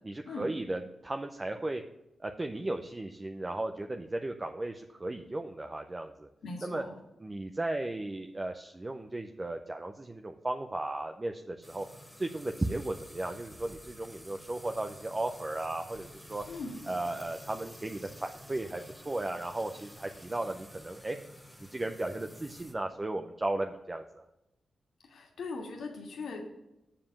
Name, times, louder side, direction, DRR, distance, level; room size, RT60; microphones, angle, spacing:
voice 1, 0.0-1.8 2.2-6.3 6.6-6.8 7.2-11.9 12.2-16.4 16.9-21.2 21.6-24.2, right 2 dB, 20° right, 5 dB, 0.6 m, -35 dB
voice 2, 6.4-7.0 16.5-16.7 25.0-26.4, left 3 dB, 80° left, 1 dB, 1.8 m, -40 dB
sound 1, 11.6-22.7, equal, 5° left, 1.1 m, -51 dB
7.6 x 4.9 x 7.0 m, 0.92 s
wide cardioid pair, 115°, 0 cm